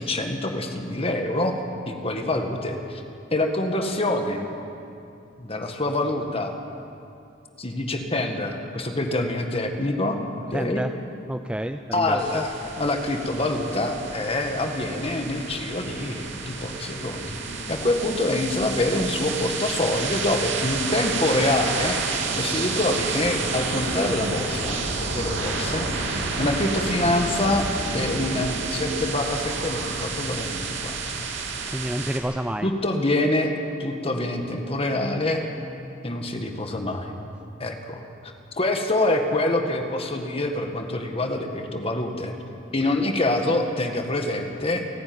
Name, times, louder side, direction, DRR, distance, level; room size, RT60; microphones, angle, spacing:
voice 1, 0.0-1.6 1.9-3.0 3.3-4.5 5.4-6.6 7.6-10.8 11.9-17.4 17.7-31.2 32.6-33.5 33.8-35.4 36.0-37.1 37.6-42.3 42.7-44.8, left 2 dB, 30° left, 4 dB, 1.8 m, -26 dB
voice 2, 10.5-10.9 11.3-12.4 31.7-32.7, right 1 dB, 5° right, 8 dB, 0.4 m, -29 dB
sound 1, 12.2-32.2, right 4 dB, 85° right, 2.5 m, -30 dB
29.0 x 9.7 x 9.6 m, 2.6 s
head